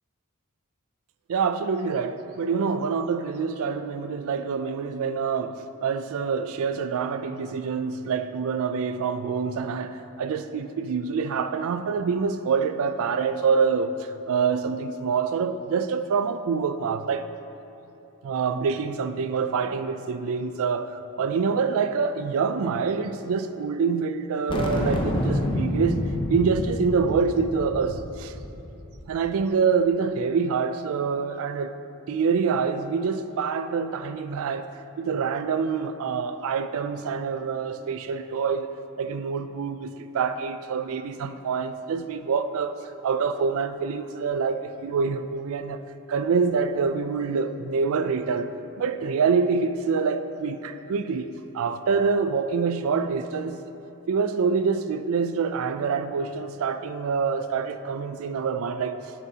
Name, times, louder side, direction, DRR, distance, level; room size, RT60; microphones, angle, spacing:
voice 1, 1.3-17.3 18.2-28.3 29.1-31.7 32.1-34.7 35.0-38.7 39.0-45.8 46.1-48.5 48.8-53.6 54.1-59.0, right 5 dB, 65° right, 0.4 m, -26 dB
sound 1, 24.5-29.2, left 1 dB, 20° left, 0.7 m, -28 dB
10.0 x 7.3 x 2.8 m
head